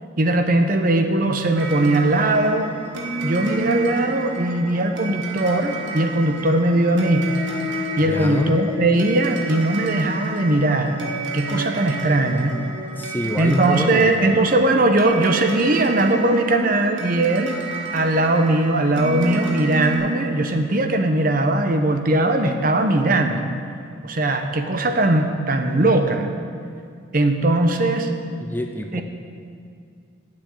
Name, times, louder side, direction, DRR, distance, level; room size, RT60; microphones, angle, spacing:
voice 1, 0.2-2.7 3.2-7.3 8.0-11.0 11.3-12.6 13.4-17.6 17.9-23.5 24.0-26.3 27.1-28.1 28.9-29.0, right 2 dB, 45° right, 6 dB, 0.8 m, -19 dB
sound 1, 1.6-20.0, right 2 dB, 75° right, 1.7 m, -30 dB
voice 2, 8.0-8.6 12.9-14.4 28.4-29.0, left 1 dB, 10° left, 4 dB, 0.5 m, -27 dB
8.9 x 7.7 x 9.0 m, 2.3 s
head